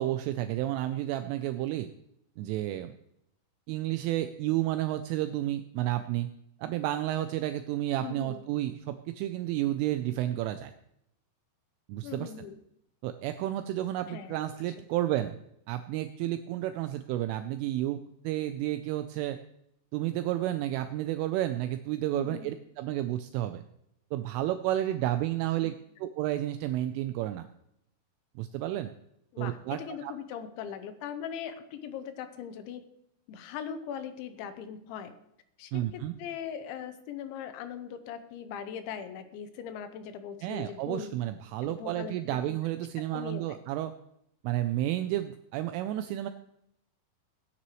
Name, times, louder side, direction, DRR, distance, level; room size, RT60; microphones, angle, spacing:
voice 1, 0.0-1.9 2.4-2.9 3.7-6.3 6.6-10.7 11.9-12.3 13.0-15.4 15.7-18.0 18.2-19.4 19.9-23.6 24.1-25.7 26.0-27.5 28.4-28.9 29.4-30.1 35.7-36.1 40.4-43.9 44.4-46.3, right 14 dB, 85° right, 9 dB, 2.9 m, -31 dB
voice 2, 8.0-8.4 12.0-12.6 14.1-14.4 22.1-22.5 25.6-25.7 29.3-32.8 33.3-35.1 35.6-41.2 41.6-42.1 42.5-42.6 43.1-43.6, left 8 dB, 80° left, 10 dB, 2.9 m, -40 dB
18.0 x 9.9 x 3.1 m, 0.78 s
omnidirectional pair, 6.0 m